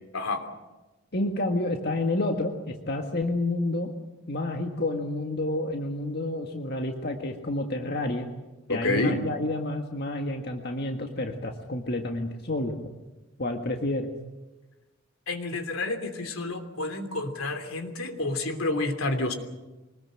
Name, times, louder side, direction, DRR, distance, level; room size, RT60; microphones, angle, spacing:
voice 1, 1.1-3.9 4.3-8.3 8.7-12.8 13.4-14.1, left 2 dB, 50° left, 3 dB, 1.7 m, -29 dB
voice 2, 8.7-9.2 15.3-19.3, left 2 dB, 80° left, 7 dB, 3.1 m, -29 dB
24.5 x 20.0 x 7.7 m, 1.1 s
head